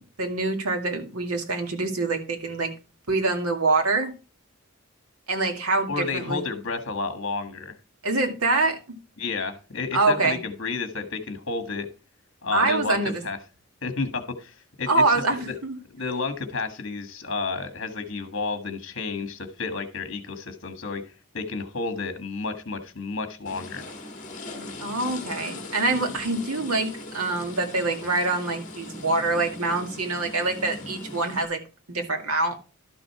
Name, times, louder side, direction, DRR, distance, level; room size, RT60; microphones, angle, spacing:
voice 1, 0.2-2.7 3.1-4.1 5.3-6.4 8.0-9.0 9.9-10.4 12.5-13.2 14.9-15.8 24.6-31.6 31.9-32.6, right 3 dB, 85° right, 2.1 m, -25 dB
voice 2, 5.9-7.7 9.2-11.9 12.4-13.4 13.8-15.5 15.9-21.0 21.3-23.8, left 4 dB, 55° left, 1.6 m, -31 dB
sound 1, 23.5-31.5, left 2 dB, 35° left, 1.8 m, -39 dB
12.0 x 6.3 x 4.8 m
head